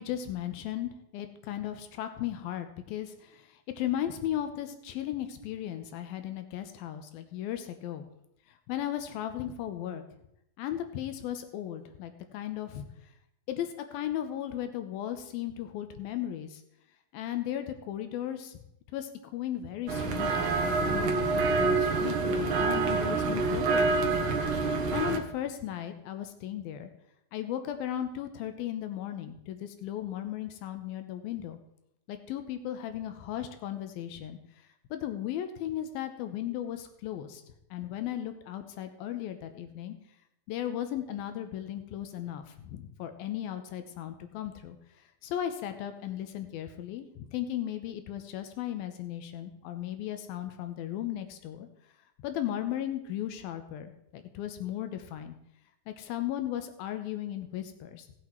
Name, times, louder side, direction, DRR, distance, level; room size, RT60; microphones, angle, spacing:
voice 1, 0.0-8.0 8.5-10.0 10.6-12.8 13.5-16.6 17.1-18.6 18.9-24.2 24.6-26.9 27.3-31.6 32.1-34.4 34.9-37.4 37.7-40.0 40.5-44.8 45.2-51.7 52.2-55.3 55.9-58.1, left 11 dB, 85° left, 8 dB, 2.7 m, -36 dB
sound 1, 19.9-25.2, right 3 dB, 65° right, 1.3 m, -27 dB
17.0 x 8.4 x 4.5 m, 0.79 s
omnidirectional pair, 4.2 m